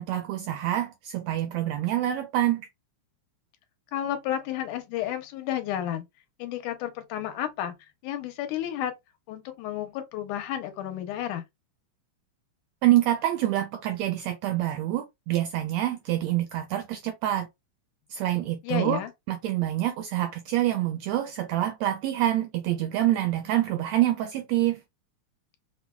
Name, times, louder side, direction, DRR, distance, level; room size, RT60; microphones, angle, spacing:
voice 1, 0.0-2.7 12.8-17.5 18.1-19.0 19.3-24.8, right 13 dB, 85° right, 1.5 m, -26 dB
voice 2, 3.9-6.1 6.4-7.7 8.0-8.9 9.3-11.4 18.6-19.1, left 11 dB, 85° left, 2.1 m, -31 dB
5.6 x 2.1 x 2.3 m
omnidirectional pair, 3.5 m